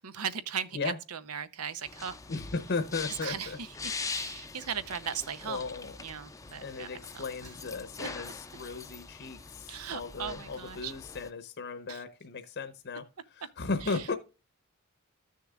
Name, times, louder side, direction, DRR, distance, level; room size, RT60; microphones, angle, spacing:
voice 1, 0.0-2.2 3.2-5.7 6.0-7.2 9.7-10.9 11.9-12.0 13.8-14.1, right 7 dB, 85° right, 0.8 m, -38 dB
sound 1, 1.9-11.3, left 4 dB, 15° left, 0.5 m, -43 dB
voice 2, 2.3-3.6 4.4-4.5 5.4-6.0 6.6-13.0 13.3-14.2, left 4 dB, 55° left, 0.8 m, -36 dB
14.0 x 6.6 x 2.4 m
head